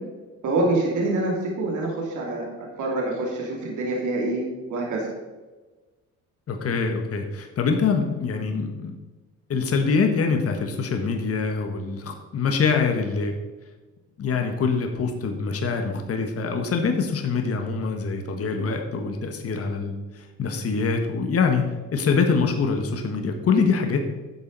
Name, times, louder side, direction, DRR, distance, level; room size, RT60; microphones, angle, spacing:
voice 1, 0.4-4.4 4.7-5.0, right 2 dB, 75° right, -2 dB, 2.7 m, -26 dB
voice 2, 6.5-9.0 9.5-13.3 14.2-24.0, left 5 dB, 50° left, 4 dB, 1.3 m, -24 dB
11.5 x 7.3 x 4.0 m, 1.2 s
cardioid pair, 90°, 30 cm